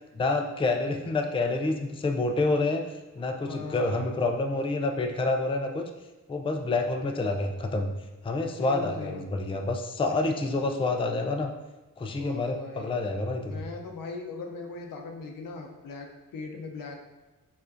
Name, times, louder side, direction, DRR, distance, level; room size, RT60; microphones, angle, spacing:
voice 1, 0.2-5.8 6.3-7.9 8.2-11.5 12.0-13.6, left 2 dB, 15° left, 3 dB, 0.3 m, -28 dB
voice 2, 3.4-4.1 8.6-9.3 10.1-10.4 12.2-13.0 13.4-17.0, left 4 dB, 85° left, 2 dB, 0.6 m, -39 dB
4.7 x 2.5 x 2.5 m, 1.1 s
cardioid pair, 65°, 33 cm